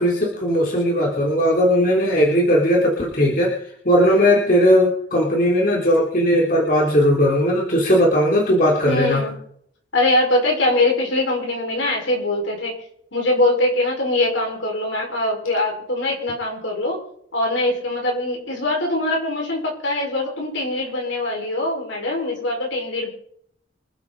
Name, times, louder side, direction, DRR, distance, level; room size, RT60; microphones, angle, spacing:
voice 1, 0.0-3.5 3.9-9.2, equal, 45° left, -2 dB, 3.4 m, -18 dB
voice 2, 8.8-9.3 9.9-12.7 13.1-17.0 17.3-23.1, left 2 dB, 80° left, 0 dB, 5.4 m, -22 dB
26.0 x 8.7 x 4.1 m, 0.66 s
head